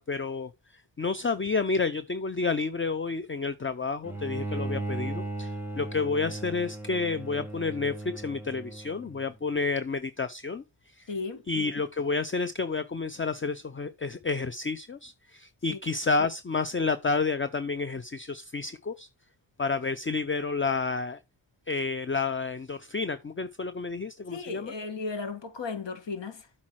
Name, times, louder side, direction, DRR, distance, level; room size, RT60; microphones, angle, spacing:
voice 1, 0.0-10.6 10.9-11.1 11.5-19.1 19.6-21.2 21.7-24.7, left 4 dB, 25° left, 0.6 m, -30 dB
Bowed string instrument, 4.0-9.3, right 2 dB, 5° right, 1.7 m, -36 dB
voice 2, 11.1-11.4 15.7-15.8 24.3-26.5, left 4 dB, 65° left, 1.9 m, -35 dB
8.3 x 4.3 x 6.2 m
cardioid pair, 55°, 47 cm